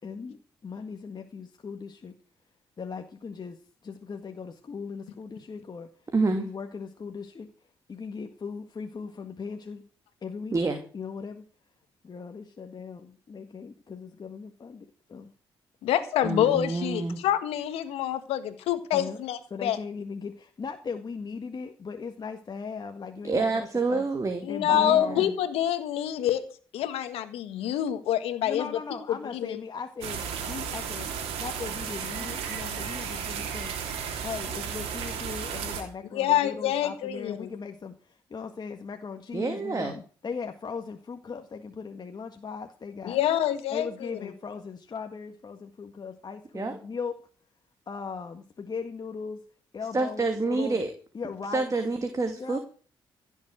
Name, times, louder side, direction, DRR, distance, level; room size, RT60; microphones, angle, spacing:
voice 1, 0.0-2.1 2.8-5.9 6.3-7.5 7.9-9.8 10.2-10.6 10.9-11.5 12.0-15.3 18.9-19.2 19.5-24.0 24.5-25.3 28.4-31.1 31.4-33.7 34.2-43.2 43.7-47.2 47.9-49.4 49.7-50.8 51.1-51.7 52.4-52.6, left 5 dB, 45° left, 5 dB, 1.7 m, -38 dB
voice 2, 6.1-6.5 10.5-10.8 16.2-17.2 23.3-24.5 24.7-25.3 39.3-39.9 46.5-46.8 49.9-50.9 51.5-52.6, right 3 dB, 35° right, 5 dB, 2.7 m, -27 dB
voice 3, 15.8-19.8 24.4-26.4 26.7-28.7 29.3-29.6 36.1-37.5 43.0-44.3, left 11 dB, 85° left, 11 dB, 1.7 m, -26 dB
sound 1, 30.0-35.8, right 7 dB, 90° right, 3.2 m, -34 dB
16.0 x 7.4 x 8.0 m, 0.41 s
supercardioid pair, 60°, 10 cm